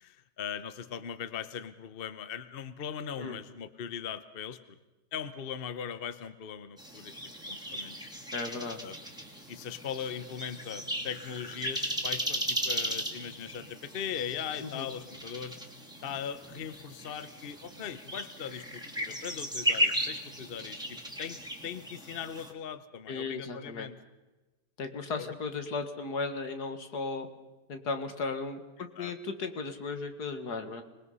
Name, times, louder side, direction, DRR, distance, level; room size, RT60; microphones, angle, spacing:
voice 1, 0.0-4.8 5.1-7.2 7.5-8.1 8.8-9.0 9.5-15.6 16.0-24.0 25.2-25.3 29.0-29.1, left 8 dB, 40° left, 12 dB, 0.9 m, -39 dB
sound 1, 6.8-22.5, equal, ahead, 2.6 m, -36 dB
voice 2, 8.3-8.8 14.6-14.9 23.1-23.9 24.8-27.3 27.7-28.6 29.0-30.8, left 4 dB, 65° left, 7 dB, 2.3 m, -35 dB
26.0 x 21.0 x 5.5 m, 1.1 s
omnidirectional pair, 1.8 m